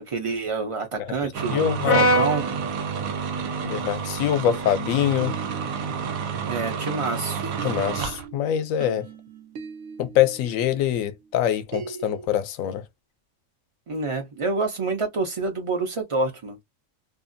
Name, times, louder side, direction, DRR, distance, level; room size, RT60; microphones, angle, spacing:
voice 1, 0.0-2.4 6.4-7.4 13.9-16.6, right 3 dB, 50° right, 0.3 m, -27 dB
sound 1, 1.3-8.3, right 6 dB, 90° right, 1.1 m, -30 dB
voice 2, 1.5-2.0 3.6-5.3 7.6-9.1 10.0-12.8, left 10 dB, 80° left, 1.0 m, -24 dB
Brass instrument, 1.8-6.1, equal, 50° left, 0.6 m, -27 dB
sound 2, 5.2-7.0 7.4-12.3, right 5 dB, 70° right, 0.9 m, -41 dB
2.6 x 2.3 x 2.5 m
omnidirectional pair, 1.4 m